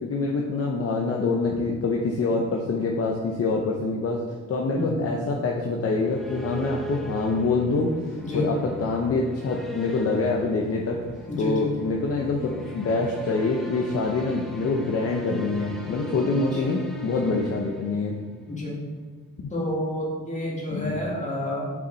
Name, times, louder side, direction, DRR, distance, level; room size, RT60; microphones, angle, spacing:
voice 1, 0.0-4.2 4.5-7.9 8.3-11.1 11.4-18.2 20.7-21.0, left 3 dB, 50° left, -1 dB, 0.8 m, -25 dB
voice 2, 4.7-5.2 8.2-8.5 11.3-11.7 16.5-16.6 18.5-18.8 19.5-21.7, left 1 dB, 25° left, -4 dB, 2.1 m, -29 dB
sound 1, 5.6-18.5, equal, ahead, 0.9 m, -39 dB
7.2 x 6.0 x 4.0 m, 1.4 s
wide cardioid pair, 140°, 30 cm